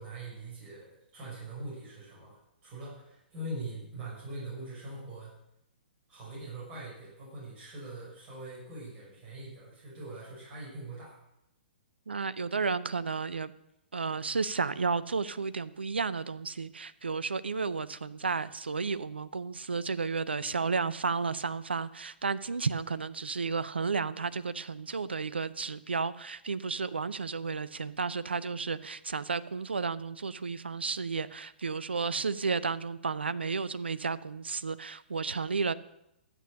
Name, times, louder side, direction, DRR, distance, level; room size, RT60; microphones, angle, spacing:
voice 1, 0.0-5.3 6.1-11.2, right 2 dB, 25° right, -6 dB, 5.9 m, -42 dB
voice 2, 12.1-13.5 13.9-35.7, right 4 dB, 75° right, 15 dB, 0.6 m, -32 dB
12.0 x 8.7 x 6.5 m, 0.82 s
figure-of-eight pair, 120°, 6 cm